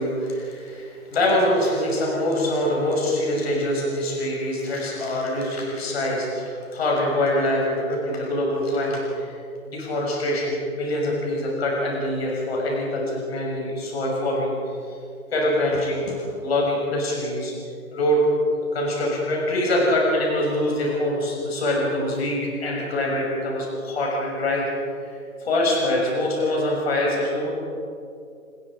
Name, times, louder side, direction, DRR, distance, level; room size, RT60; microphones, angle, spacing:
voice 1, 0.0-9.3 9.7-14.6 15.3-17.5 17.9-18.3 18.5-24.7 25.0-27.5, left 1 dB, 45° left, -2 dB, 6.3 m, -24 dB
28.0 x 21.0 x 5.1 m, 2.5 s
hypercardioid pair, 165°, 43 cm